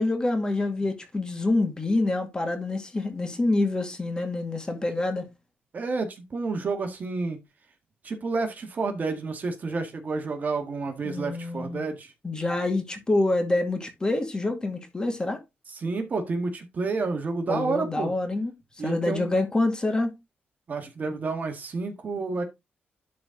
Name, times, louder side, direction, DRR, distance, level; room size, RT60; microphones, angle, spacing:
voice 1, 0.0-5.3 11.0-11.8 12.2-15.4 17.5-18.5 18.8-20.2, left 2 dB, 20° left, 2.1 m, -26 dB
voice 2, 5.7-7.4 8.0-12.1 15.8-18.1 18.8-19.3 20.7-22.4, right 3 dB, 45° right, 1.8 m, -30 dB
11.5 x 4.3 x 3.8 m
cardioid pair, 115°, 4 cm